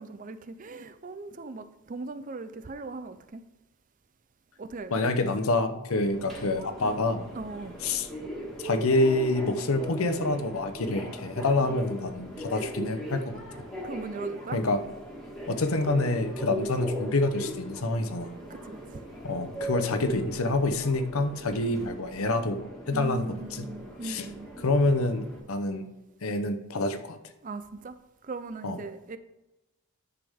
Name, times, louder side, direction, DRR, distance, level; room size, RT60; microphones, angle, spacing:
voice 1, 0.0-3.4 4.6-5.1 7.3-7.8 11.6-11.8 13.8-14.6 16.6-16.7 18.5-18.8 22.9-24.5 27.4-28.0 28.2-29.2, right 3 dB, 35° right, 0.4 m, -39 dB
voice 2, 4.9-7.2 7.8-8.1 8.6-13.3 14.5-14.8 15.5-18.3 19.2-23.7 24.0-24.3 24.6-25.8 26.2-27.2 28.6-28.8, left 2 dB, 70° left, 0.8 m, -27 dB
Subway metro underground, 6.0-25.4, equal, ahead, 1.7 m, -39 dB
10.5 x 6.9 x 3.6 m
head